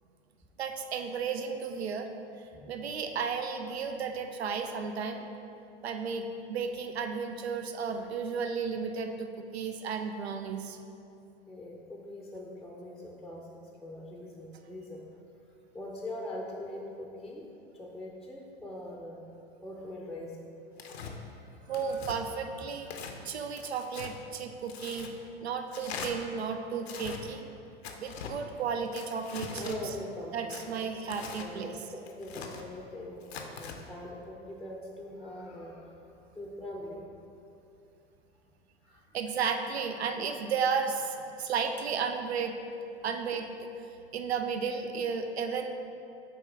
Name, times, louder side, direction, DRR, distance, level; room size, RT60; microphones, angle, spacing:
voice 1, 0.6-2.1 2.7-5.2 5.8-10.8 21.7-22.9 23.2-25.1 25.4-27.5 28.0-30.0 30.3-31.8 39.1-42.6 43.0-43.7 44.1-45.7, right 6 dB, 90° right, 6 dB, 0.5 m, -33 dB
voice 2, 11.5-15.0 15.7-17.5 17.7-19.2 19.6-20.5 21.0-22.1 22.6-23.1 29.6-30.8 31.4-31.8 32.2-35.9 36.4-37.1 38.8-39.0, left 1 dB, ahead, -1 dB, 0.5 m, -43 dB
Tearing, 20.8-21.1 21.7-22.2 22.8-23.2 23.6-24.1 24.7-25.1 25.7-26.1 26.8-27.2 27.8-28.3 28.9-29.8 30.5-31.5 32.1-32.6 33.2-33.8, left 6 dB, 80° left, 0.7 m, -42 dB
6.9 x 4.6 x 3.6 m, 2.7 s
hypercardioid pair, 90°, 31 cm